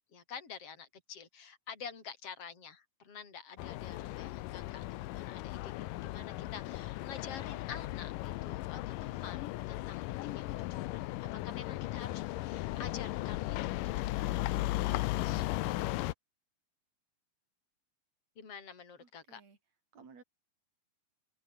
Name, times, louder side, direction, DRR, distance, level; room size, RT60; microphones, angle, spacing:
voice 1, 0.1-13.6 13.8-14.4 15.2-15.5 18.4-19.4, left 6 dB, 45° left, 5.4 m, -48 dB
sound 1, 3.6-16.1, left 18 dB, 80° left, 2.3 m, -36 dB
voice 2, 19.0-19.6 19.9-20.2, right 5 dB, 50° right, 5.9 m, -56 dB
omnidirectional pair, 3.9 m